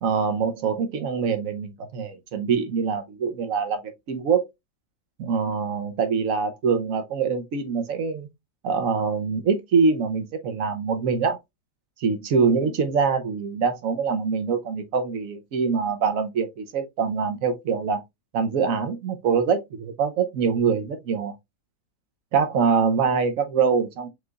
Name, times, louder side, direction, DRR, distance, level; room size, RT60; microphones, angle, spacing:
voice 1, 0.0-3.8 4.1-4.5 5.2-8.3 8.6-11.4 12.0-18.0 18.3-21.3 22.3-24.1, right 5 dB, 60° right, 1.1 m, -24 dB
4.8 x 3.8 x 2.4 m
omnidirectional pair, 1.8 m